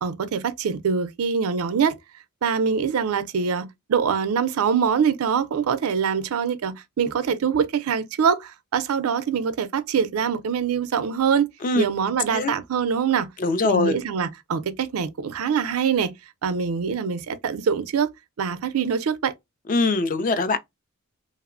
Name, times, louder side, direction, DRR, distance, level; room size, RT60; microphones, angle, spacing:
voice 1, 0.0-2.0 2.4-11.5 11.8-13.3 13.6-16.1 16.4-18.1 18.4-19.3, right 6 dB, 85° right, 0.4 m, -24 dB
voice 2, 13.4-14.0 19.7-20.6, left 3 dB, 40° left, 0.3 m, -22 dB
2.8 x 2.0 x 2.4 m
head